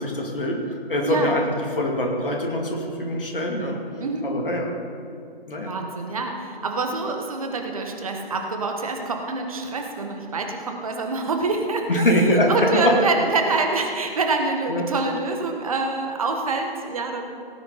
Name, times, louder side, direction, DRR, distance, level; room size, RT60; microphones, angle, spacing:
voice 1, 0.0-3.8 4.2-4.7 5.5-5.7 11.9-13.0 14.7-14.8, left 1 dB, 60° left, 0 dB, 2.4 m, -23 dB
voice 2, 5.7-12.1 12.5-17.3, right 3 dB, 35° right, 3 dB, 1.3 m, -26 dB
17.5 x 9.2 x 4.0 m, 2.4 s
figure-of-eight pair, 150°, 30 cm